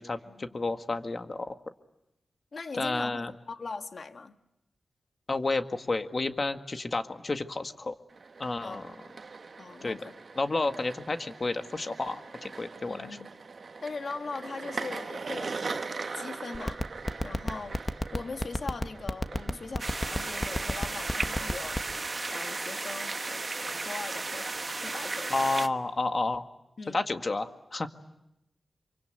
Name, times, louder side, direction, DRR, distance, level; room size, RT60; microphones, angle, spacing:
voice 1, 0.0-1.6 2.7-3.3 5.3-7.9 8.4-8.9 9.8-10.0 10.4-13.1 25.3-26.4 26.9-27.9, left 3 dB, 45° left, 1.9 m, -31 dB
voice 2, 2.5-4.4 8.6-8.9 9.6-10.2 12.8-13.3 13.8-16.8 17.2-24.5 24.8-25.6 26.8-27.0, left 4 dB, 60° left, 1.6 m, -41 dB
sound 1, 8.1-25.0, right 4 dB, 60° right, 1.4 m, -42 dB
sound 2, 16.5-21.9, left 1 dB, 20° left, 1.3 m, -28 dB
sound 3, 19.8-25.7, right 3 dB, 40° right, 1.2 m, -34 dB
26.5 x 24.5 x 9.2 m
cardioid pair, 60°, 0 cm